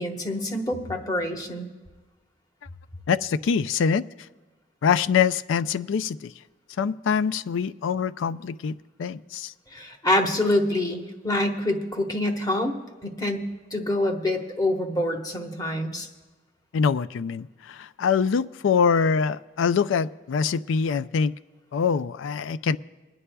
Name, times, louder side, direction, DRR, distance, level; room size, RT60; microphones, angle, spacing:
voice 1, 0.0-1.7 9.7-12.7 13.0-16.1, left 1 dB, 20° left, 1.1 m, -26 dB
voice 2, 3.1-4.0 4.8-6.3 6.8-9.5 16.7-21.3 21.7-22.8, left 6 dB, 80° left, 0.4 m, -24 dB
29.0 x 9.7 x 2.3 m
head